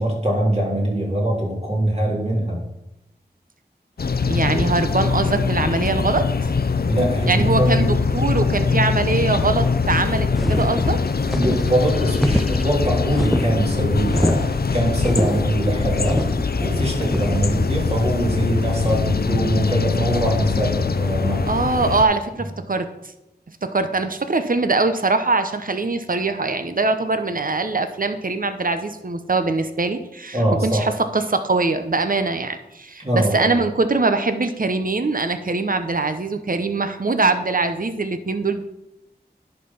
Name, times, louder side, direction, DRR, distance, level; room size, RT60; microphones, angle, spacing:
voice 1, 0.0-2.6 4.5-4.7 6.9-7.9 11.3-16.2 16.6-21.5 30.3-30.8 33.0-33.5, right 1 dB, 35° right, -3 dB, 3.3 m, -22 dB
sound 1, 4.0-22.0, left 5 dB, 65° left, 0.5 m, -22 dB
voice 2, 4.3-6.3 7.3-11.0 21.5-22.9 23.6-38.6, right 3 dB, 55° right, 9 dB, 0.8 m, -22 dB
sound 2, 10.3-17.4, equal, ahead, 0.4 m, -26 dB
10.5 x 4.5 x 5.6 m, 0.89 s
wide cardioid pair, 40°, 17 cm